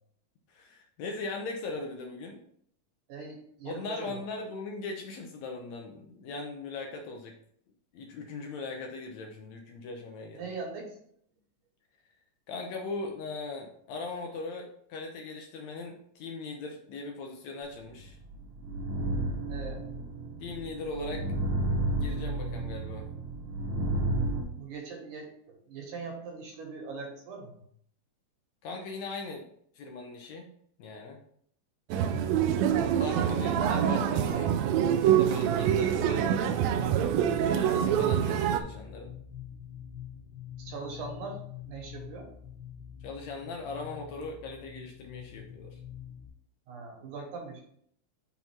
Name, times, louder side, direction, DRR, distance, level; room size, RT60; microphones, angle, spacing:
voice 1, 0.5-2.4 3.7-7.3 7.9-10.5 12.5-18.2 20.4-21.3 22.0-23.1 28.6-29.4 29.8-30.5 30.8-31.2 32.8-34.5 35.0-36.6 37.5-39.2 43.0-45.8, left 3 dB, 70° left, 2 dB, 1.8 m, -39 dB
voice 2, 3.1-4.2 10.3-10.9 19.5-19.9 24.5-27.6 31.9-32.2 40.6-41.4 41.7-42.3 46.7-47.6, right 4 dB, 75° right, 0 dB, 2.9 m, -41 dB
sound 1, 18.0-24.4, right 1 dB, 55° right, 1.8 m, -32 dB
sound 2, 31.9-38.6, right 9 dB, 90° right, 1.5 m, -25 dB
sound 3, 36.7-46.3, left 9 dB, 45° left, 1.4 m, -45 dB
5.9 x 4.0 x 4.4 m, 0.65 s
omnidirectional pair, 3.7 m